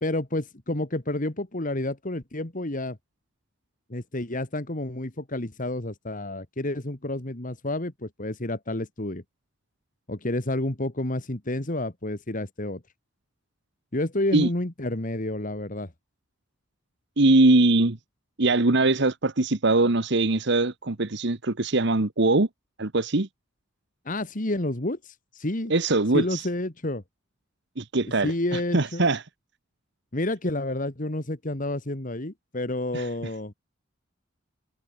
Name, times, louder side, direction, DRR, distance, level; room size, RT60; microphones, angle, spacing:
voice 1, 0.0-3.0 3.9-9.2 10.1-12.8 13.9-15.9 24.1-25.7 26.1-27.0 28.2-29.1 30.1-33.5, left 1 dB, 45° left, 2.1 m, -30 dB
voice 2, 17.2-18.0 18.4-22.5 22.8-23.3 25.7-26.4 27.8-29.2 32.9-33.1, right 2 dB, 60° right, 1.4 m, -22 dB
head